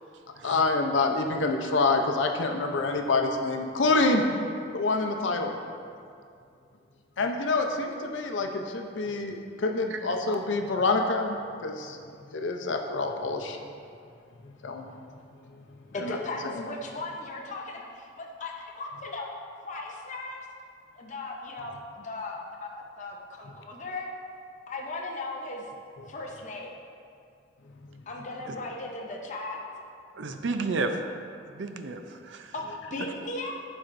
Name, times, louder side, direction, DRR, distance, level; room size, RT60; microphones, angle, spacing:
voice 1, 0.4-4.2 4.7-5.5 7.2-12.0 12.3-13.6 14.4-14.9 16.0-16.2 16.5-16.6, left 3 dB, 90° left, 3 dB, 0.6 m, -27 dB
voice 2, 15.9-19.4 19.6-20.4 21.0-24.1 24.7-25.6 26.1-26.7 28.1-29.6 32.5-33.5, left 2 dB, 40° left, -1 dB, 0.6 m, -37 dB
voice 3, 30.1-31.0 31.5-32.5, right 3 dB, 75° right, 7 dB, 0.5 m, -32 dB
11.5 x 4.3 x 2.6 m, 2.4 s
head